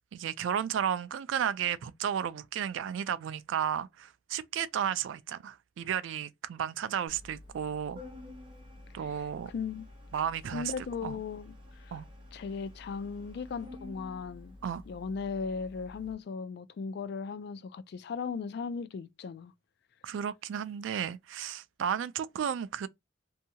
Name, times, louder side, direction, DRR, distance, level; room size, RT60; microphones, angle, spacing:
voice 1, 0.1-8.0 8.9-9.5 10.1-11.2 11.9-12.1 14.6-14.8 20.0-22.9, right 8 dB, 70° right, 0.3 m, -33 dB
Organ, 7.1-16.1, left 2 dB, 25° right, 0.7 m, -50 dB
voice 2, 9.5-9.9 10.5-11.5 11.8-11.9 12.3-14.6 14.9-19.5, left 5 dB, 55° left, 0.3 m, -37 dB
2.7 x 2.2 x 2.7 m
head